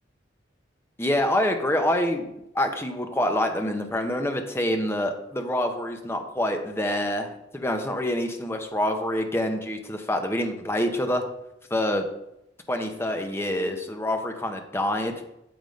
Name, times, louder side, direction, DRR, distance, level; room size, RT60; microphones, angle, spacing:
voice 1, 1.0-11.2 11.7-12.0 12.7-15.2, left 1 dB, 15° left, 5 dB, 0.7 m, -26 dB
7.8 x 3.6 x 5.2 m, 0.86 s
head